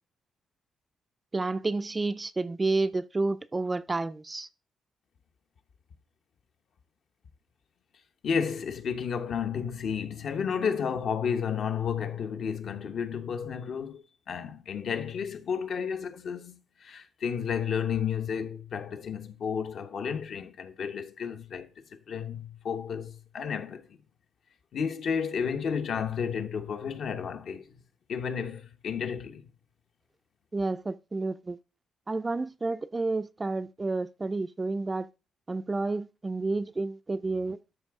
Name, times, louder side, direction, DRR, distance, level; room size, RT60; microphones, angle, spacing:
voice 1, 1.3-4.5 30.5-31.6 32.1-35.1 35.5-37.6, right 3 dB, 20° right, 0.3 m, -30 dB
voice 2, 8.2-23.9 24.7-27.8 28.1-29.4, left 7 dB, 60° left, 0.9 m, -32 dB
12.5 x 4.8 x 3.5 m
cardioid pair, 135°, 0 cm